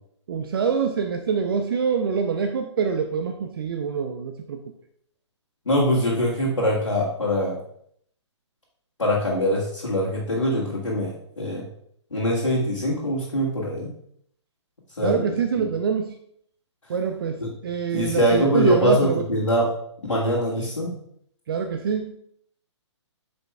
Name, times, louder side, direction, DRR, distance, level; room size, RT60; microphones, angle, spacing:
voice 1, 0.3-4.6 15.0-16.2 16.9-19.2 21.5-22.2, right 6 dB, 50° right, 7 dB, 0.6 m, -25 dB
voice 2, 5.7-7.6 9.0-11.6 12.1-13.9 15.0-15.7 17.4-17.5 17.9-19.7 20.1-21.0, equal, 75° left, -6 dB, 1.8 m, -23 dB
8.9 x 5.1 x 2.3 m, 0.68 s
figure-of-eight pair, 125°, 15 cm